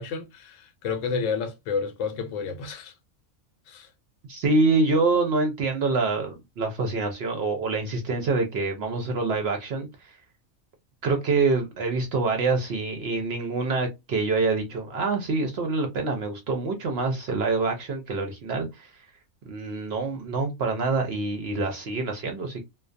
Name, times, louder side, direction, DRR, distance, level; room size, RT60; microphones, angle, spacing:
voice 1, 0.0-2.9 3.7-3.9, left 5 dB, 70° left, 0.9 m, -30 dB
voice 2, 4.3-9.9 11.0-18.9 19.5-22.6, right 3 dB, 65° right, 0.7 m, -26 dB
2.3 x 2.2 x 2.5 m
omnidirectional pair, 1.4 m